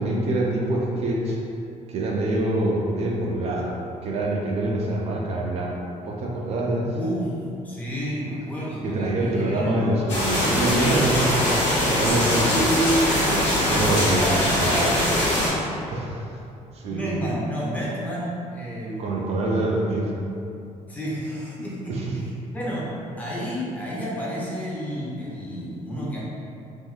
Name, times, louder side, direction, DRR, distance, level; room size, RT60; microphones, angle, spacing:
voice 1, 0.0-1.4 1.9-5.8 6.0-6.9 8.8-11.4 11.8-12.5 13.2-14.9 15.9-16.3 16.7-17.1 19.0-20.1 21.9-22.2, right 1 dB, 50° right, -2 dB, 0.3 m, -25 dB
voice 2, 6.9-7.4 7.6-9.9 12.1-15.5 16.9-19.6 20.9-22.1 22.5-22.9 23.2-26.2, equal, 10° left, -7 dB, 0.5 m, -30 dB
sound 1, 10.1-15.5, left 1 dB, 50° left, 1.1 m, -22 dB
3.4 x 2.5 x 2.3 m, 2.6 s
cardioid pair, 165°, 14 cm